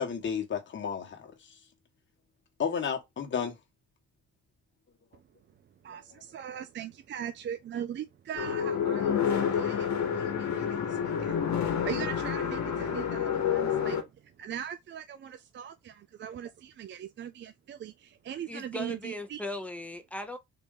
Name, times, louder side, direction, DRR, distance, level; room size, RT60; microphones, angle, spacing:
voice 1, 0.0-1.3 2.6-3.6 5.9-6.0, left 7 dB, 40° left, 1.3 m, -32 dB
voice 2, 5.8-11.4 11.7-14.0 14.4-19.4, right 9 dB, 40° right, 0.4 m, -40 dB
sound 1, 8.4-14.0, left 8 dB, 65° left, 1.1 m, -29 dB
voice 3, 18.5-20.4, left 1 dB, 5° left, 0.8 m, -38 dB
3.8 x 2.7 x 3.7 m
cardioid pair, 90°, 30 cm